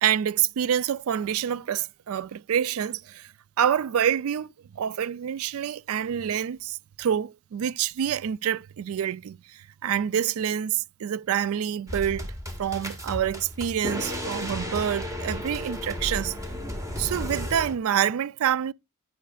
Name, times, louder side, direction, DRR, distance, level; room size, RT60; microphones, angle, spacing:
voice 1, 0.0-3.3 3.6-12.3 12.6-16.3 17.0-18.7, right 9 dB, 70° right, 0.3 m, -27 dB
sound 1, 11.9-17.8, left 1 dB, 15° right, 1.7 m, -34 dB
10.5 x 8.2 x 2.3 m
head